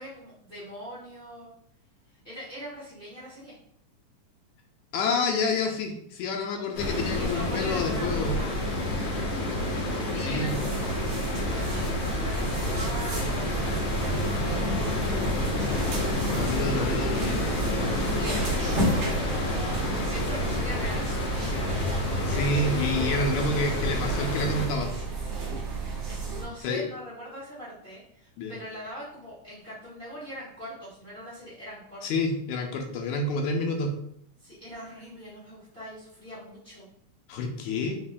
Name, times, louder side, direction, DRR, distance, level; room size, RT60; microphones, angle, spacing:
voice 1, 0.0-1.5 2.2-3.5 7.0-8.6 10.0-15.2 17.9-23.4 26.2-32.0 34.4-36.9, equal, 40° left, -10 dB, 0.7 m, -42 dB
voice 2, 4.9-8.3 10.2-10.5 16.3-17.5 22.3-24.9 26.6-26.9 28.4-28.5 32.0-33.9 37.3-38.0, left 2 dB, 80° left, 3 dB, 1.9 m, -28 dB
sound 1, 6.7-24.7, left 1 dB, 60° left, 1.8 m, -29 dB
sound 2, 10.4-26.4, right 3 dB, 50° right, 1.5 m, -32 dB
5.1 x 2.4 x 3.5 m, 0.71 s
omnidirectional pair, 3.5 m